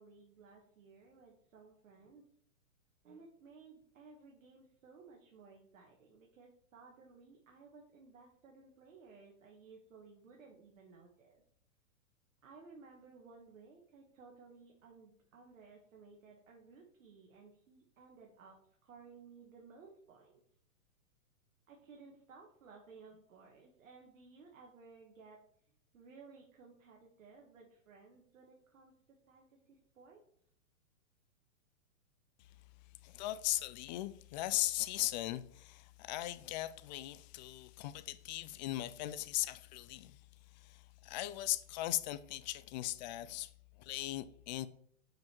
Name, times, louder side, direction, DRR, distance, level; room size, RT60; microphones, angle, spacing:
voice 1, 0.0-2.2 3.0-11.4 12.4-18.6 18.8-20.4 21.7-25.4 25.7-30.2, right 4 dB, 80° right, 1.6 m, -58 dB
voice 2, 33.0-40.2 40.6-43.5 43.8-44.7, left 16 dB, 35° left, 0.4 m, -38 dB
5.9 x 5.2 x 4.4 m
hypercardioid pair, 125°, 40 cm